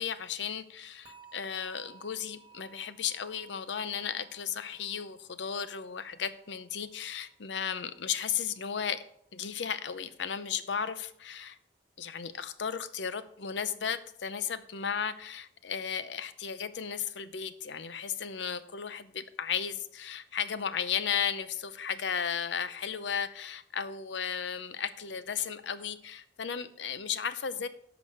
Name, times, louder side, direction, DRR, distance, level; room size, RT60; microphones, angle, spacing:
voice 1, 0.0-9.0 9.3-11.6 12.0-27.7, left 7 dB, 85° left, 13 dB, 0.6 m, -35 dB
sound 1, 1.0-8.1 8.4-8.8 9.3-9.4, right 6 dB, 30° right, 1.7 m, -60 dB
11.0 x 6.1 x 4.8 m, 0.71 s
head